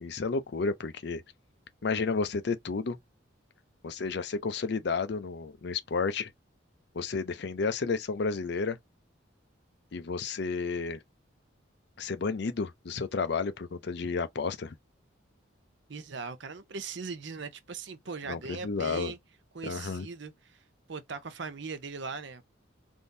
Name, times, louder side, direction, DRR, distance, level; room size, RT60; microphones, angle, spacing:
voice 1, 0.0-1.2 1.8-3.0 3.8-6.3 6.9-8.8 9.9-11.0 12.0-14.7 18.3-19.1 19.6-20.1, left 4 dB, 55° left, 0.5 m, -31 dB
voice 2, 15.9-19.2 19.5-20.3 20.9-22.4, right 4 dB, 65° right, 0.6 m, -39 dB
3.6 x 2.6 x 2.6 m
head